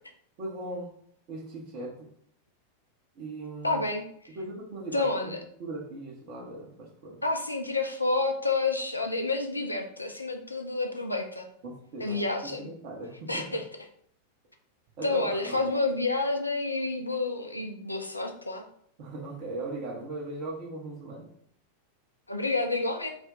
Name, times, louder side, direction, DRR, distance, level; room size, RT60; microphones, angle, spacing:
voice 1, 0.4-0.9 1.3-2.1 3.1-3.8 4.3-5.3 5.6-7.2 11.6-13.6 15.0-15.7 19.0-21.3, right 2 dB, 45° right, -2 dB, 0.8 m, -39 dB
voice 2, 3.6-4.0 4.9-5.4 7.2-11.5 12.0-12.7 13.3-13.6 15.0-18.7 22.3-23.1, left 3 dB, 85° left, 4 dB, 0.4 m, -29 dB
2.5 x 2.2 x 3.6 m, 0.65 s
figure-of-eight pair, 90°, 0 cm